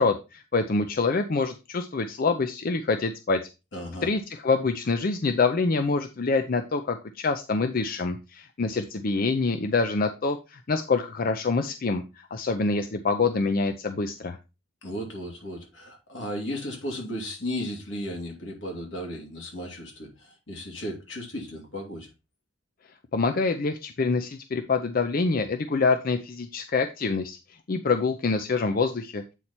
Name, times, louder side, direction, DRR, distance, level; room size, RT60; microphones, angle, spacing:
voice 1, 0.0-3.4 4.0-14.4 23.1-27.4 27.7-29.2, left 4 dB, 50° left, 0.5 m, -26 dB
voice 2, 3.7-4.1 14.8-22.1, equal, 85° left, 2.7 m, -35 dB
8.2 x 4.3 x 4.2 m
head